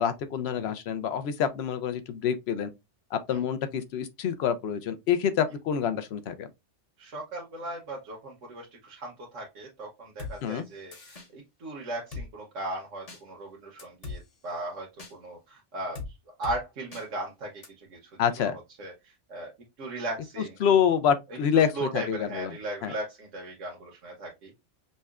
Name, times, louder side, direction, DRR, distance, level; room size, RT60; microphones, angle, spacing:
voice 1, 0.0-2.7 3.1-6.5 10.4-10.6 18.2-18.6 20.6-22.6 22.8-22.9, left 8 dB, 65° left, 0.8 m, -27 dB
voice 2, 7.0-16.0 16.4-18.1 18.4-18.5 18.8-19.5 19.8-20.6 21.5-24.6, right 1 dB, 85° right, 1.3 m, -37 dB
Drum kit, 10.2-10.3 10.9-11.3 12.1-12.3 13.1-13.2 13.8-14.2 15.0-15.1 16.0-16.1 16.4-16.6 16.9-17.0 17.6-17.7, left 4 dB, 35° left, 0.8 m, -38 dB
5.4 x 2.2 x 2.3 m
omnidirectional pair, 1.2 m